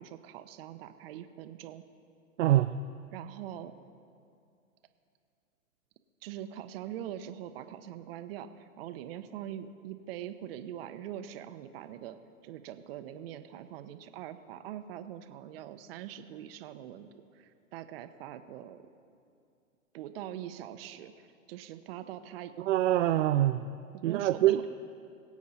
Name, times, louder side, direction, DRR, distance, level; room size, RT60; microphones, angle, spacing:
voice 1, 0.0-1.8 3.1-3.7 6.2-12.2 12.4-18.8 19.9-22.5 23.9-24.6, right 11 dB, 45° right, 10 dB, 0.9 m, -43 dB
voice 2, 2.4-2.8 22.6-23.7 24.0-24.6, right 13 dB, 60° right, 8 dB, 0.5 m, -25 dB
22.5 x 8.4 x 4.2 m, 2.4 s
hypercardioid pair, 130°, 42 cm